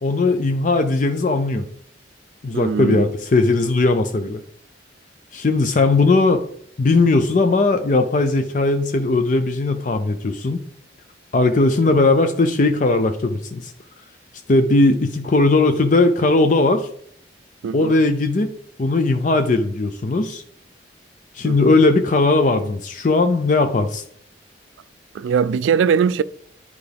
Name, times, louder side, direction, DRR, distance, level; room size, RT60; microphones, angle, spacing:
voice 1, 0.0-1.7 2.4-4.4 5.3-6.4 6.8-10.6 11.3-13.7 14.5-16.9 17.7-18.5 18.8-20.4 21.3-24.0, left 3 dB, 45° left, 0.4 m, -18 dB
voice 2, 2.5-3.1 17.6-18.0 21.4-21.7 25.1-26.2, right 7 dB, 90° right, 0.3 m, -20 dB
10.5 x 4.7 x 3.4 m
head